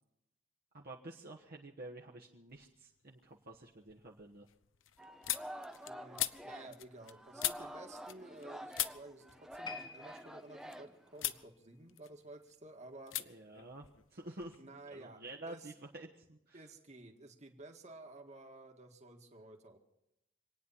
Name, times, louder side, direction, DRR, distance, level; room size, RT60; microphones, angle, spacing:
voice 1, 0.7-4.5 13.2-14.6 14.9-16.7, right 2 dB, 50° right, -2 dB, 1.3 m, -50 dB
sound 1, 2.5-3.0 3.4-8.5 8.7-10.8 11.2-11.5 11.8-12.6 13.1-13.3 13.5-14.6, left 14 dB, 75° left, 0.7 m, -41 dB
Singing, 5.0-11.4, equal, 5° right, 0.8 m, -49 dB
voice 2, 5.9-13.1 14.6-15.2 15.5-15.6 16.5-19.8, right 2 dB, 35° right, 4 dB, 1.8 m, -53 dB
sound 2, 9.6-12.9 13.2-13.5 14.2-14.3, left 5 dB, 20° left, 1.1 m, -52 dB
26.5 x 9.5 x 5.7 m, 0.86 s
head